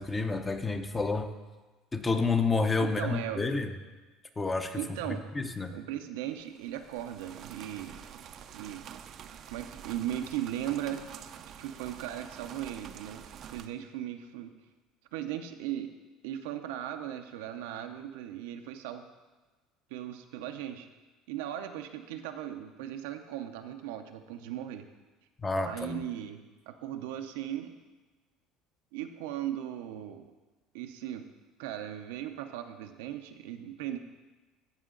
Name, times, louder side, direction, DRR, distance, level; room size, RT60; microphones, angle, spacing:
voice 1, 0.0-1.3 1.9-3.7 4.4-4.8 5.3-5.7 25.4-26.0, left 4 dB, 20° left, 7 dB, 0.7 m, -29 dB
voice 2, 2.8-3.4 4.7-5.3 5.7-8.0 8.5-8.8 9.5-11.0 11.6-13.2 13.5-14.5 15.1-15.9 16.2-19.1 19.9-20.9 21.3-24.8 25.7-27.8 28.9-30.3 30.7-31.2 31.6-34.0, right 11 dB, 90° right, 6 dB, 0.6 m, -37 dB
sound 1, 6.4-13.7, right 9 dB, 50° right, 0.5 m, -47 dB
14.5 x 5.0 x 3.8 m, 1.2 s
supercardioid pair, 110°, 0 cm